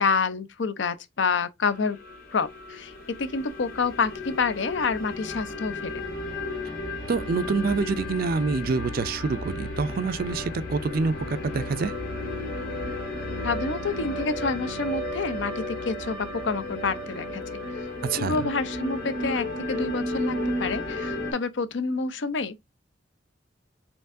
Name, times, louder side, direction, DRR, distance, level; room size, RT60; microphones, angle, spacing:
voice 1, 0.0-2.0 2.3-2.9 3.2-6.0 13.4-17.6 18.2-22.6, left 4 dB, 75° left, 0.6 m, -28 dB
sound 1, 1.7-21.3, left 1 dB, 50° left, 1.5 m, -33 dB
voice 2, 7.1-11.9 18.1-18.5, right 4 dB, 50° right, 0.4 m, -26 dB
4.4 x 3.6 x 2.5 m
head